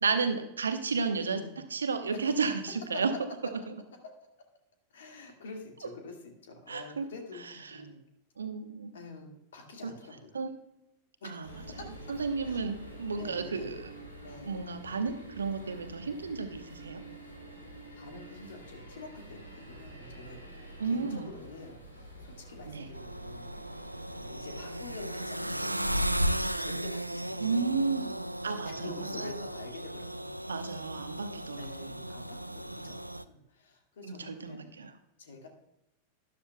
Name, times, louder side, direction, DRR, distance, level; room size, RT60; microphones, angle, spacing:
voice 1, 0.0-1.4 1.7-3.1 6.7-7.0 7.7-7.9 8.4-8.9 9.8-9.9 10.3-10.5 11.2-11.6 12.1-13.9 14.4-17.0 20.8-21.3 22.7-22.9 27.4-28.1 28.4-28.9 30.5-31.9 34.0-34.9, right 4 dB, 70° right, 8 dB, 1.0 m, -32 dB
voice 2, 1.2-1.6 2.1-2.2 2.9-3.0 4.9-6.2 6.4-8.0 8.9-10.4 11.2-11.8 12.4-12.6 13.2-13.7 14.2-14.7 18.0-23.6 24.1-28.0 28.6-30.4 31.6-34.7 35.2-35.5, left 3 dB, 60° left, 3 dB, 2.0 m, -47 dB
sound 1, 11.4-25.6, right 1 dB, 85° left, 2.4 m, -48 dB
sound 2, 22.9-33.2, right 1 dB, 85° right, 0.3 m, -35 dB
12.5 x 11.5 x 2.3 m, 0.86 s
figure-of-eight pair, 90°, 0 cm